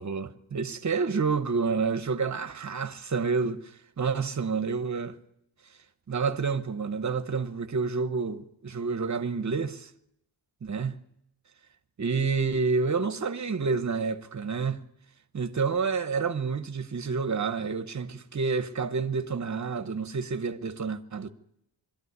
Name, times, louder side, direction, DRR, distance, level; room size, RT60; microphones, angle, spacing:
voice 1, 0.0-3.6 4.0-5.2 6.1-9.9 10.6-11.0 12.0-14.8 15.3-21.3, right 5 dB, 35° right, 1.0 m, -29 dB
22.0 x 13.5 x 9.5 m
wide cardioid pair, 175°, 49 cm